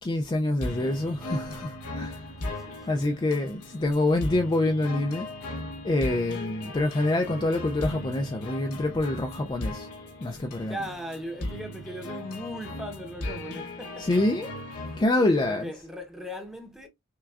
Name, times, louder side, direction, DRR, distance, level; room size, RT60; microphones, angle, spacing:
voice 1, 0.0-2.3 2.8-5.3 5.8-9.9 10.2-10.8 14.0-14.5 15.0-15.7, left 2 dB, 20° left, 0.4 m, -26 dB
sound 1, 0.6-15.0, left 1 dB, 85° left, 1.1 m, -37 dB
voice 2, 2.4-3.1 10.7-14.2 15.2-16.9, equal, ahead, 0.8 m, -38 dB
5.7 x 2.3 x 2.3 m
head